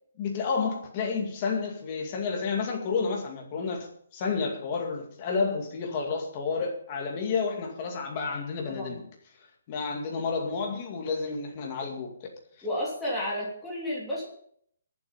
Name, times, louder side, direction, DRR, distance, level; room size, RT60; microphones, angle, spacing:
voice 1, 0.2-9.0 9.7-12.3, left 5 dB, 20° left, 1 dB, 2.2 m, -30 dB
voice 2, 8.7-9.0 12.6-14.3, left 1 dB, 5° left, -8 dB, 3.2 m, -32 dB
21.5 x 7.7 x 5.5 m, 0.63 s
hypercardioid pair, 180°, 0 cm